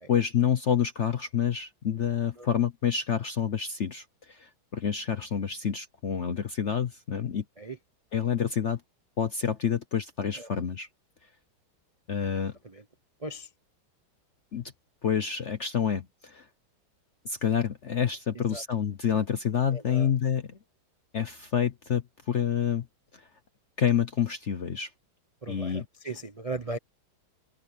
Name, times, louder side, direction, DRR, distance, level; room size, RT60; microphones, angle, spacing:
voice 1, 0.1-7.4 8.1-8.8 9.2-10.9 12.1-12.5 14.5-14.6 15.0-16.5 17.2-20.6 21.1-22.9 23.1-23.2 23.8-24.9 25.5-25.9, left 8 dB, 55° left, 0.8 m, -28 dB
voice 2, 19.7-20.1 25.4-26.8, right 2 dB, 45° right, 0.4 m, -37 dB
omnidirectional pair, 2.2 m